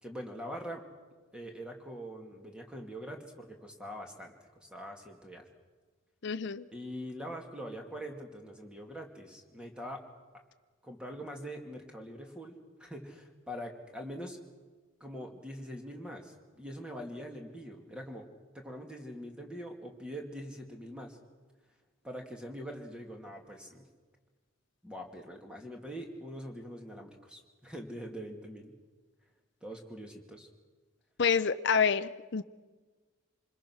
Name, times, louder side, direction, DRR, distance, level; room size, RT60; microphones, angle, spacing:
voice 1, 0.0-0.8 1.3-5.4 6.7-10.0 10.8-14.4 15.0-18.2 18.5-21.2 22.0-23.9 24.8-28.7 29.6-30.5, equal, 5° right, 2.5 m, -43 dB
voice 2, 6.2-6.6 31.2-32.4, left 6 dB, 55° left, 0.6 m, -28 dB
26.5 x 21.5 x 6.3 m
head